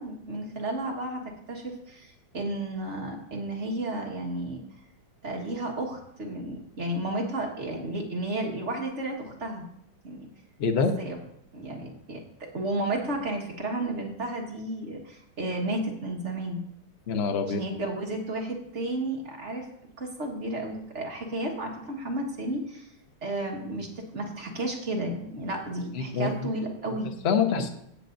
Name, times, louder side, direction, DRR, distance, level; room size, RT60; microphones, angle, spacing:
voice 1, 0.0-4.6 5.2-9.7 10.0-10.3 10.7-11.2 11.5-12.2 12.5-16.6 17.4-19.7 20.0-22.9 23.2-27.1, right 1 dB, 40° right, 0 dB, 1.7 m, -32 dB
voice 2, 10.6-10.9 17.1-17.6 25.9-26.3 27.2-27.7, left 5 dB, 45° left, 5 dB, 0.8 m, -25 dB
17.0 x 7.2 x 2.6 m, 0.73 s
omnidirectional pair, 2.2 m